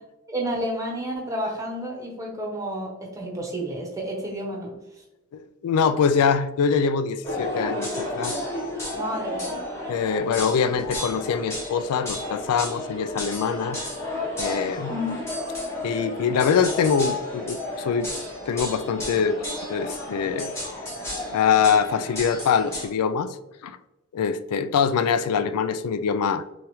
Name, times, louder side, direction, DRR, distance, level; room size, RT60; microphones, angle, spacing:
voice 1, 0.3-4.7 8.9-9.6 14.9-15.2, equal, 15° right, -1 dB, 0.9 m, -30 dB
voice 2, 5.3-8.5 9.9-13.8 14.4-14.9 15.8-18.1 18.5-20.5 21.3-23.4 23.6-23.8 24.1-26.4, left 6 dB, 90° left, 12 dB, 0.3 m, -24 dB
sound 1, 7.2-22.9, left 1 dB, 10° left, 1.0 m, -32 dB
6.1 x 2.4 x 3.0 m, 0.97 s
head